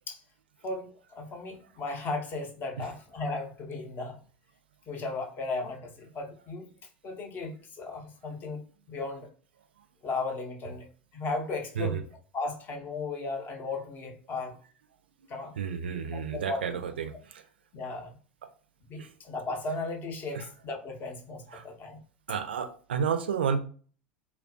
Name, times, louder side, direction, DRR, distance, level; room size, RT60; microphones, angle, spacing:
voice 1, 0.6-4.2 4.9-6.7 7.0-9.3 10.0-10.9 11.1-12.0 12.3-14.5 15.3-15.5 16.1-16.6 17.7-18.1 18.9-22.0, left 3 dB, 35° left, 2 dB, 0.7 m, -36 dB
voice 2, 15.6-17.4 19.0-19.1 20.3-20.5 21.5-21.6 22.3-23.6, right 7 dB, 70° right, 7 dB, 0.4 m, -31 dB
3.1 x 2.4 x 2.5 m, 0.41 s
figure-of-eight pair, 75°, 6 cm